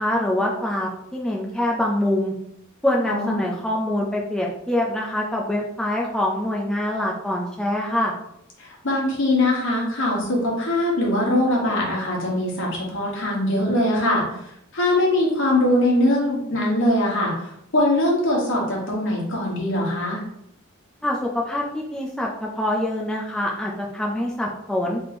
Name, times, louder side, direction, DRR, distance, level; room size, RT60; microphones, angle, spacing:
voice 1, 0.0-2.3 2.8-8.1 21.0-25.0, left 1 dB, 5° left, -3 dB, 0.4 m, -25 dB
voice 2, 3.0-3.4 8.6-14.2 14.7-17.3 17.7-20.2, left 1 dB, 60° left, -2 dB, 1.3 m, -22 dB
3.4 x 2.8 x 4.2 m, 0.78 s
head